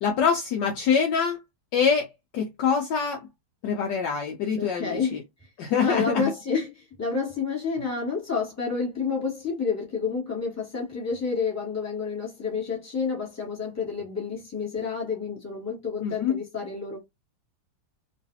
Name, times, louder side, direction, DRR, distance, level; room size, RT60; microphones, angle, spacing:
voice 1, 0.0-1.4 1.7-2.1 2.3-3.2 3.6-5.2 5.6-6.3 16.0-16.4, left 6 dB, 70° left, 1.2 m, -24 dB
voice 2, 4.6-5.2 5.8-17.0, left 5 dB, 10° left, 1.5 m, -29 dB
3.1 x 3.1 x 2.7 m
omnidirectional pair, 2.2 m